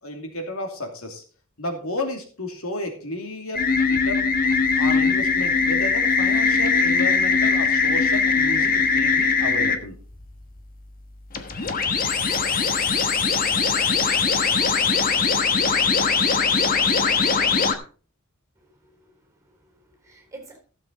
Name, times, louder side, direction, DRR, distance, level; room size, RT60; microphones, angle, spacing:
voice 1, 0.0-1.2 1.6-4.3 4.8-9.9 15.6-16.5, left 1 dB, 80° left, 3 dB, 2.6 m, -33 dB
sound 1, 3.5-9.8 11.3-17.7, left 5 dB, 45° left, 1.2 m, -21 dB
voice 2, 18.6-20.6, right 3 dB, 15° right, 3 dB, 4.0 m, -48 dB
15.0 x 7.5 x 3.9 m, 0.40 s
head